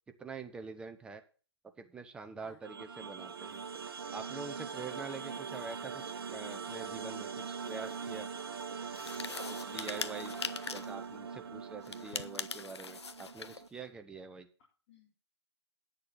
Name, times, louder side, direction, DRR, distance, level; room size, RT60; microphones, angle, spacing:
voice 1, 0.2-1.2 1.8-3.7 4.1-6.0 6.3-8.3 9.6-10.4 10.7-14.5, right 4 dB, 5° right, 7 dB, 0.8 m, -45 dB
sound 1, 2.6-13.7, right 6 dB, 60° right, 1.4 m, -42 dB
voice 2, 4.7-5.1 9.8-10.9 14.9-15.1, left 4 dB, 35° left, -3 dB, 4.0 m, -57 dB
sound 2, 8.9-11.0 11.8-13.6, left 5 dB, 75° left, 0.8 m, -41 dB
9.8 x 6.8 x 6.9 m, 0.37 s
figure-of-eight pair, 140°, 14 cm